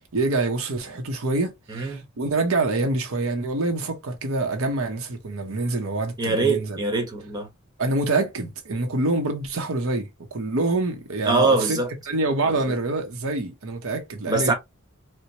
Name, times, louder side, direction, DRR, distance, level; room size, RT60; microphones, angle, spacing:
voice 1, 0.1-6.8 7.8-11.8 12.1-14.5, right 2 dB, 70° right, 0.7 m, -26 dB
voice 2, 1.7-2.0 6.2-7.5 11.2-11.9 14.3-14.5, right 3 dB, 20° right, 1.0 m, -23 dB
4.4 x 2.0 x 2.8 m
head